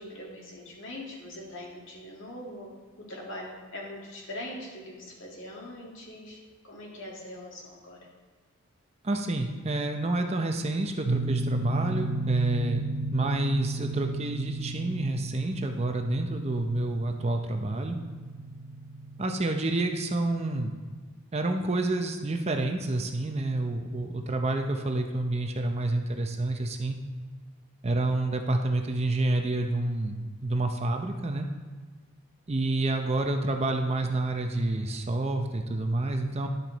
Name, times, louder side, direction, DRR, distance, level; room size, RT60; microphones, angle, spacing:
voice 1, 0.0-2.7 3.1-6.4 6.6-8.0, left 1 dB, 60° left, -2 dB, 2.2 m, -42 dB
voice 2, 9.0-12.8 13.1-18.0 19.2-20.7 21.3-27.0 27.8-30.1 30.4-31.5 32.5-36.5, right 2 dB, 30° right, 4 dB, 0.6 m, -28 dB
sound 1, 11.1-20.6, right 2 dB, 75° right, 0.8 m, -34 dB
11.0 x 7.5 x 4.0 m, 1.5 s
head